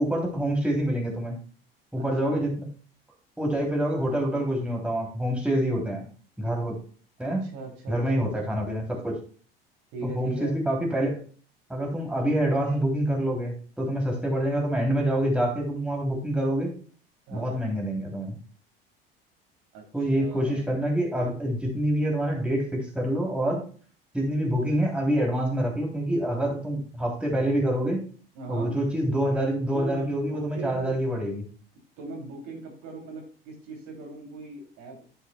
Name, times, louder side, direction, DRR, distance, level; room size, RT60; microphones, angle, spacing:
voice 1, 0.0-1.4 1.9-2.7 3.4-6.1 6.4-6.8 7.2-7.5 7.9-9.2 10.1-11.2 11.7-16.7 17.3-18.4 19.9-23.6 24.1-28.0 28.5-31.5, right 1 dB, 5° right, -1 dB, 3.1 m, -26 dB
voice 2, 2.0-2.4 7.2-8.4 9.9-10.6 12.7-12.8 14.1-14.2 17.3-17.7 19.7-20.8 28.3-28.7 29.7-31.0 32.0-35.0, right 3 dB, 55° right, 0 dB, 3.1 m, -40 dB
11.0 x 7.8 x 2.3 m, 0.41 s
figure-of-eight pair, 65°, 29 cm